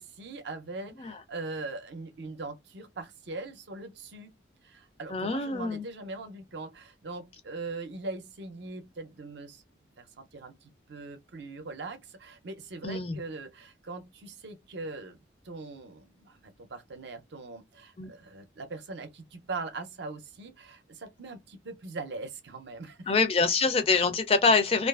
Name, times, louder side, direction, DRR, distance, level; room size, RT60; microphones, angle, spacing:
voice 1, 0.0-4.3 4.6-9.6 10.0-15.2 15.4-23.1, right 3 dB, 65° right, 0.6 m, -41 dB
voice 2, 5.1-5.9 12.8-13.2 18.0-18.1 23.1-24.9, left 4 dB, 30° left, 0.4 m, -25 dB
2.4 x 2.3 x 2.3 m
head